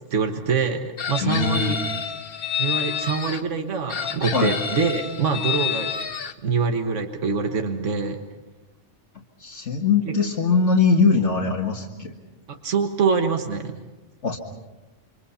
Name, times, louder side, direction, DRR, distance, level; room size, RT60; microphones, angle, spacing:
voice 1, 0.1-1.8 2.6-6.1 6.4-8.2 12.5-13.7, right 5 dB, 80° right, 5 dB, 1.7 m, -24 dB
Chicken rooster, 1.0-3.4 3.9-6.3, left 7 dB, 55° left, 1.2 m, -28 dB
voice 2, 1.2-1.7 4.3-4.5 9.4-12.1 14.2-14.4, left 5 dB, 75° left, -2 dB, 2.1 m, -21 dB
29.0 x 24.5 x 5.7 m, 1.1 s
omnidirectional pair, 1.3 m